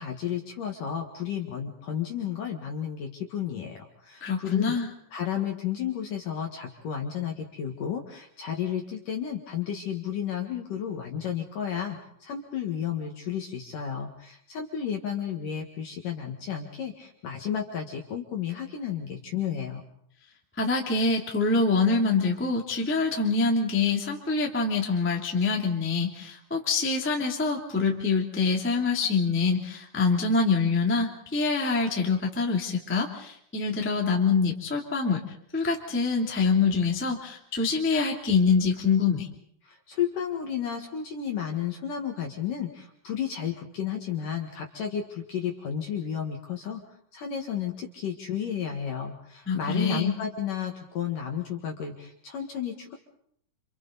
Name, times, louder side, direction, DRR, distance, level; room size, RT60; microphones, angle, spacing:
voice 1, 0.0-4.7 5.1-19.8 39.6-46.8 47.1-52.9, left 8 dB, 55° left, 2 dB, 2.6 m, -32 dB
voice 2, 4.2-4.9 20.6-35.2 35.5-39.3 49.4-50.1, left 4 dB, 5° left, 0 dB, 1.4 m, -25 dB
29.0 x 28.0 x 4.1 m, 0.69 s
omnidirectional pair, 5.7 m